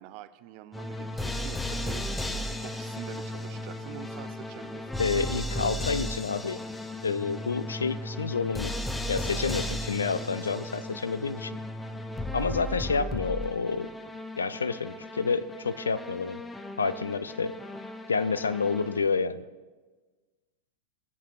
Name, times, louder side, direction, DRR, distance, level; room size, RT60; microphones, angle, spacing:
voice 1, 0.0-2.0 2.3-4.9 12.9-13.1, right 13 dB, 45° right, 13 dB, 0.5 m, -45 dB
sound 1, 0.7-19.2, left 1 dB, 10° left, 0.6 m, -35 dB
voice 2, 5.0-6.6 7.0-8.7 9.1-11.6 12.3-13.9 14.4-16.4 16.8-17.5 18.1-19.4, left 5 dB, 75° left, 14 dB, 0.4 m, -29 dB
18.0 x 8.2 x 2.4 m, 1.3 s
figure-of-eight pair, 90°, 0 cm